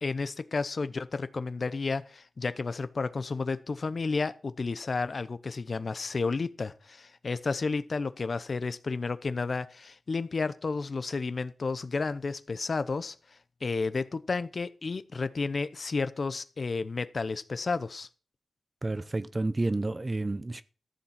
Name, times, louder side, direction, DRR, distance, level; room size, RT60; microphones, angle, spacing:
voice 1, 0.0-13.1 13.6-18.1, left 4 dB, 40° left, 0.7 m, -32 dB
voice 2, 18.8-20.6, right 2 dB, 20° right, 0.6 m, -30 dB
14.0 x 7.2 x 5.8 m
wide cardioid pair, 150°, 0 cm